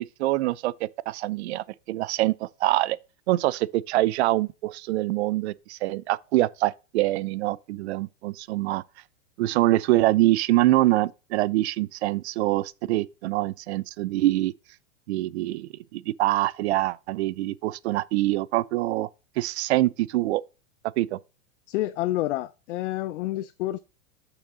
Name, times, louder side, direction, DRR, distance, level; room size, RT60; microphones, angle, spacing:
voice 1, 0.0-3.0 3.3-8.8 9.4-14.5 15.1-19.1 19.4-20.4 21.0-21.2, right 17 dB, 55° right, 0.5 m, -25 dB
voice 2, 21.7-23.8, left 16 dB, 65° left, 0.6 m, -28 dB
6.4 x 6.1 x 3.8 m
supercardioid pair, 165°, 39 cm